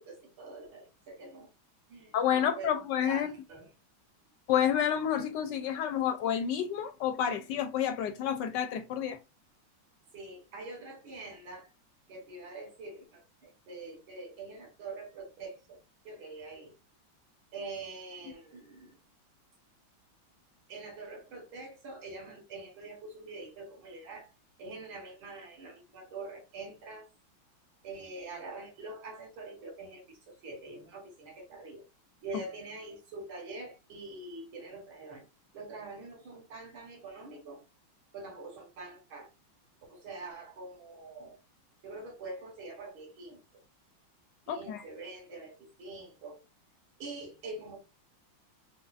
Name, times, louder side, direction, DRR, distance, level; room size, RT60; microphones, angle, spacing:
voice 1, 0.0-1.5 1.9-2.7 3.1-3.7 10.1-11.7 12.1-15.8 16.0-16.7 17.5-19.0 20.7-24.3 24.6-27.1 27.8-31.8 32.2-35.2 35.5-37.6 38.1-39.3 39.9-41.4 41.8-43.4 44.5-45.5 45.8-46.4 47.0-47.8, right 3 dB, 80° right, 2.2 m, -44 dB
voice 2, 2.1-3.3 4.5-9.2 44.5-44.8, left 9 dB, 75° left, 1.0 m, -29 dB
4.8 x 2.4 x 2.4 m
omnidirectional pair, 2.2 m